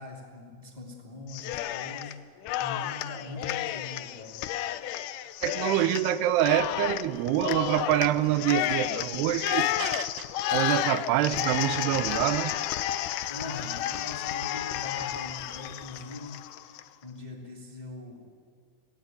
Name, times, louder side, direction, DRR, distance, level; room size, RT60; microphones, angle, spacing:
voice 1, 0.0-2.2 2.6-4.4 13.3-16.3 16.6-18.3, left 3 dB, 15° left, 1 dB, 1.8 m, -42 dB
Cheering, 1.3-2.1 2.4-16.8, left 13 dB, 85° left, 1.8 m, -31 dB
voice 2, 5.4-12.5, right 12 dB, 85° right, 14 dB, 2.9 m, -26 dB
18.5 x 17.0 x 9.3 m, 2.2 s
omnidirectional pair, 4.6 m